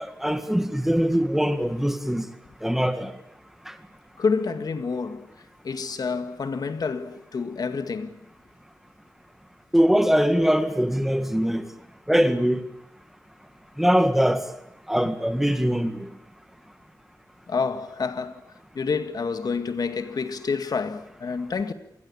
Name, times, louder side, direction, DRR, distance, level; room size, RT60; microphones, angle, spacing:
voice 1, 0.0-2.3 2.6-3.1 3.7-3.8 9.7-11.7 12.1-12.6 13.8-14.4 14.9-16.1, equal, 5° right, 2.0 m, -22 dB
voice 2, 4.2-5.3 5.6-8.1 17.5-18.4 18.7-21.7, left 5 dB, 65° left, 2.0 m, -28 dB
27.0 x 20.5 x 8.6 m
wide cardioid pair, 110°, 7 cm